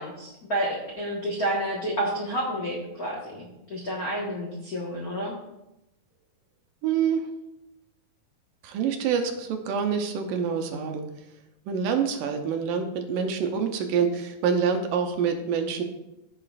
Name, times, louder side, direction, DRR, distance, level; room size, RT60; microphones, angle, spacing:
voice 1, 0.0-5.3, right 1 dB, 75° left, -4 dB, 0.8 m, -30 dB
voice 2, 6.8-7.3 8.6-11.0 11.7-15.8, right 6 dB, 75° right, 5 dB, 2.3 m, -26 dB
15.5 x 6.7 x 2.5 m, 0.90 s
omnidirectional pair, 4.2 m